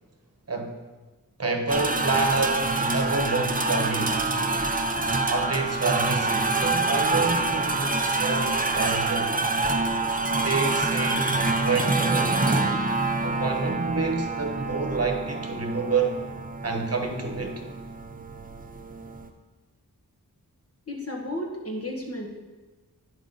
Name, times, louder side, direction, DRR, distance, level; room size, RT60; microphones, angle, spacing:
voice 1, 0.5-0.8 1.4-4.3 5.3-9.4 10.4-12.9 13.2-16.2 16.6-17.6, right 3 dB, 40° right, 4 dB, 1.1 m, -28 dB
sound 1, 1.7-19.3, right 3 dB, 25° right, 0.7 m, -26 dB
voice 2, 20.9-22.3, left 1 dB, 40° left, 0 dB, 1.7 m, -33 dB
10.5 x 4.8 x 3.9 m, 1.3 s
wide cardioid pair, 50°, 36 cm